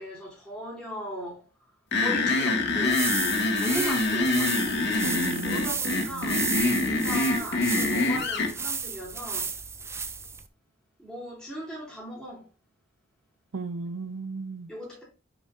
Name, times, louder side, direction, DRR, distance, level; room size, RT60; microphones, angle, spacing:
voice 1, 0.0-1.5 1.9-3.1 3.6-4.7 5.4-6.5 6.8-9.5 11.0-12.5 14.7-15.0, equal, 5° left, 3.5 m, -37 dB
sound 1, 1.9-8.5, left 2 dB, 60° left, 1.3 m, -25 dB
sound 2, 2.7-10.5, right 5 dB, 15° right, 0.4 m, -33 dB
voice 2, 5.0-5.7 6.1-6.3 13.5-14.7, right 4 dB, 80° right, 0.6 m, -35 dB
6.1 x 4.9 x 3.7 m
head